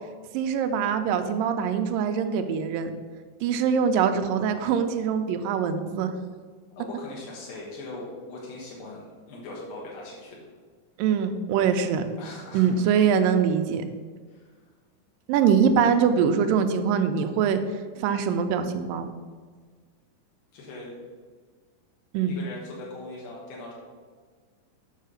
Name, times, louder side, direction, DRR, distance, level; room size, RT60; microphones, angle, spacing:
voice 1, 0.3-2.9 3.4-6.1 11.0-12.0 12.5-13.8 15.3-17.6 18.0-19.1 22.1-22.4, right 7 dB, 85° right, 8 dB, 2.3 m, -23 dB
voice 2, 6.8-9.0 9.3-10.4 12.2-12.8 14.3-14.4 20.5-21.0 22.2-23.7, left 2 dB, 85° left, -4 dB, 3.2 m, -40 dB
7.4 x 5.6 x 6.4 m, 1.5 s
omnidirectional pair, 4.0 m